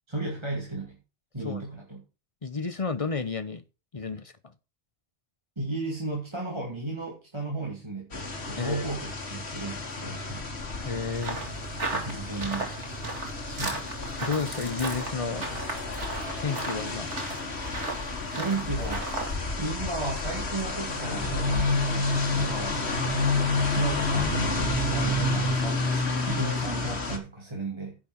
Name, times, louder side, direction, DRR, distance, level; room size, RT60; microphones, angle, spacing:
voice 1, 0.1-1.0 1.3-2.0 5.6-10.5 11.9-12.7 13.4-14.0 18.3-19.1 19.6-22.8 23.7-24.3 24.9-28.0, right 2 dB, 25° right, 2.6 m, -34 dB
voice 2, 2.4-3.6 3.9-4.3 8.6-8.8 10.8-11.4 14.2-15.4 16.4-17.1, left 4 dB, 35° left, 0.7 m, -31 dB
sound 1, 8.1-27.2, left 2 dB, 65° left, 2.2 m, -30 dB
sound 2, 11.2-19.3, right 2 dB, 80° right, 3.0 m, -36 dB
10.5 x 5.8 x 6.3 m
omnidirectional pair, 1.2 m